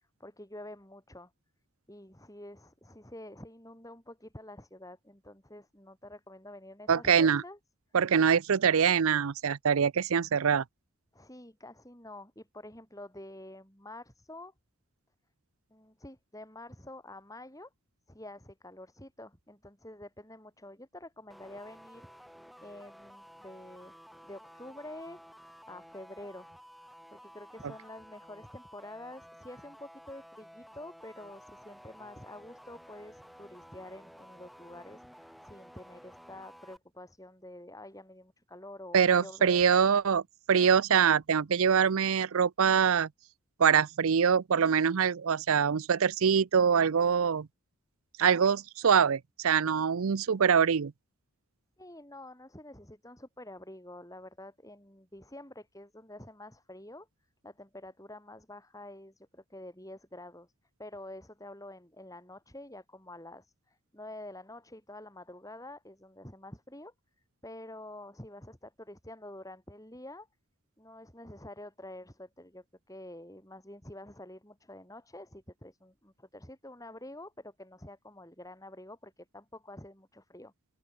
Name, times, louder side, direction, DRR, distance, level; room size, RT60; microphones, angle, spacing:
voice 1, 0.2-1.3 1.9-7.6 11.1-14.5 15.7-17.7 18.1-22.1 22.6-23.9 24.2-25.2 25.7-26.5 26.8-39.7 51.8-57.1 57.4-60.5 60.8-66.9 67.4-70.3 70.8-80.5, left 1 dB, 15° left, 7.3 m, -48 dB
voice 2, 6.9-7.4 7.9-10.6 38.9-40.2 40.5-43.1 43.6-47.5 48.2-50.9, right 7 dB, 70° right, 0.5 m, -24 dB
sound 1, 21.3-36.8, equal, ahead, 6.0 m, -53 dB
head